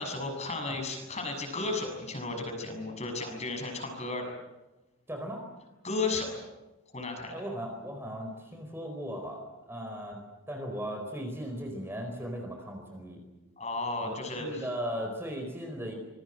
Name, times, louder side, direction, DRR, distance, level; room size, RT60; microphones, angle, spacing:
voice 1, 0.0-4.3 5.8-6.3 6.9-7.4 13.6-14.7, left 3 dB, 30° left, 4 dB, 6.8 m, -34 dB
voice 2, 5.1-5.4 7.3-10.2 10.5-13.2 14.0-15.9, equal, 10° right, 3 dB, 4.6 m, -37 dB
26.5 x 23.0 x 7.8 m, 1.0 s
head